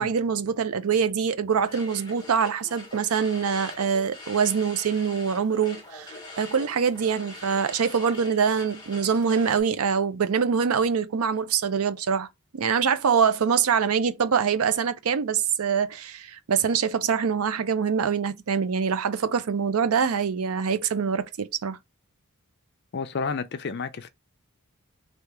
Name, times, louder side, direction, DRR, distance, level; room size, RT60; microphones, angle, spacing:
voice 1, 0.0-12.3 12.5-21.8, right 6 dB, 75° right, 0.5 m, -24 dB
sound 1, 1.5-9.6, left 2 dB, 20° left, 1.0 m, -43 dB
voice 2, 22.9-24.1, left 5 dB, 50° left, 0.5 m, -31 dB
3.3 x 2.8 x 4.6 m
head